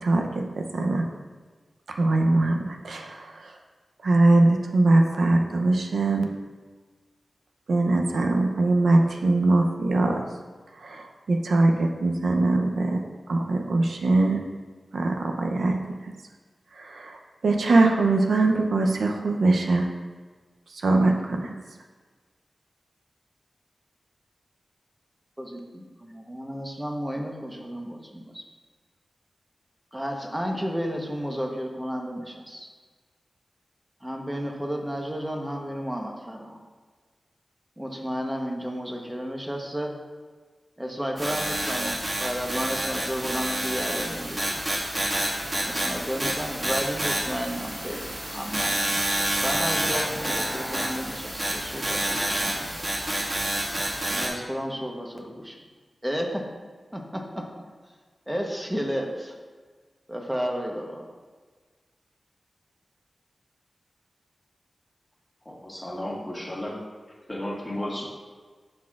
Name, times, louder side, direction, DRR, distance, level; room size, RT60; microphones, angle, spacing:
voice 1, 0.0-1.0 2.0-3.5 4.0-6.3 7.7-10.2 10.8-13.0 13.3-14.4 14.9-16.0 16.7-17.2 17.4-19.9 20.7-21.5, right 2 dB, 85° right, 3 dB, 0.6 m, -22 dB
voice 2, 25.4-28.5 29.9-32.7 34.0-36.6 37.8-40.0 40.8-44.6 45.6-48.8 49.4-53.0 54.1-55.6 56.0-56.5 56.9-57.5 58.3-59.3 60.1-61.1, equal, 10° right, 1 dB, 0.9 m, -32 dB
sound 1, 41.2-54.3, right 1 dB, 40° right, 1.8 m, -28 dB
voice 3, 65.4-66.8 67.3-68.0, left 1 dB, 20° left, -3 dB, 1.5 m, -33 dB
12.0 x 4.2 x 2.4 m, 1.5 s
wide cardioid pair, 90°, 0 cm